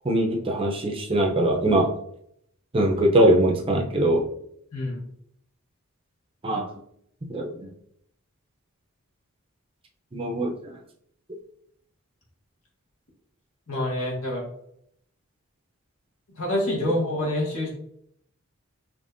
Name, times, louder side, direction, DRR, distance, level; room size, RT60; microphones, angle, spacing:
voice 1, 0.0-1.9 2.7-4.3 6.4-6.7 7.3-7.7 10.1-10.7, right 1 dB, 25° right, 1 dB, 0.6 m, -22 dB
voice 2, 4.7-5.0 13.7-14.4 16.4-17.7, left 1 dB, 80° left, -3 dB, 1.6 m, -26 dB
5.1 x 3.0 x 2.6 m, 0.71 s
head